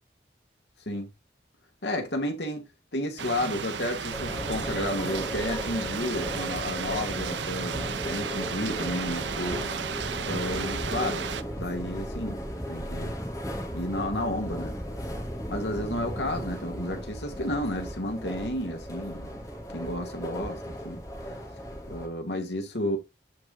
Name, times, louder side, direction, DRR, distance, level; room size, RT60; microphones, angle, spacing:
voice 1, 1.8-2.6 2.9-9.7 10.3-11.2 11.6-12.4 12.7-13.1 13.7-14.7 15.5-19.3 19.7-21.0 21.9-23.0, left 1 dB, 75° left, 2.5 m, -32 dB
sound 1, 3.2-11.4, right 6 dB, 90° right, 0.7 m, -34 dB
sound 2, 4.1-22.1, equal, 20° left, 2.2 m, -36 dB
13.5 x 4.7 x 2.6 m
head